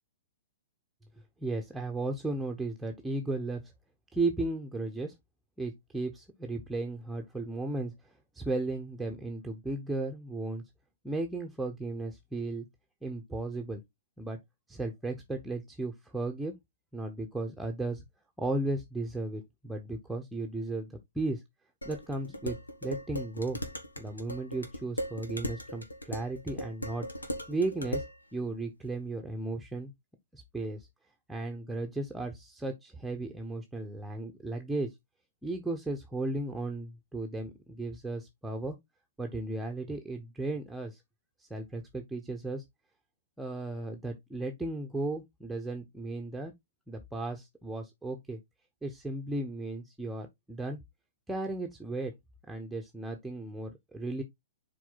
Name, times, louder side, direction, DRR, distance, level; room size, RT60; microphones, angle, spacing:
voice 1, 1.4-3.6 4.1-5.1 5.6-10.6 11.0-12.7 13.0-13.8 14.2-14.4 14.7-16.6 16.9-18.0 18.4-21.4 21.8-23.6 24.0-27.1 27.5-28.1 28.3-29.9 30.3-30.9 31.3-34.9 35.4-38.8 39.2-41.0 41.4-42.6 43.4-46.5 46.9-48.4 48.8-50.8 51.3-52.1 52.5-54.2, right 2 dB, 5° right, 1.1 m, -35 dB
Dishes pots and pans, 21.8-28.2, equal, 85° left, 1.7 m, -38 dB
7.5 x 4.6 x 4.0 m
figure-of-eight pair, 115°, 0 cm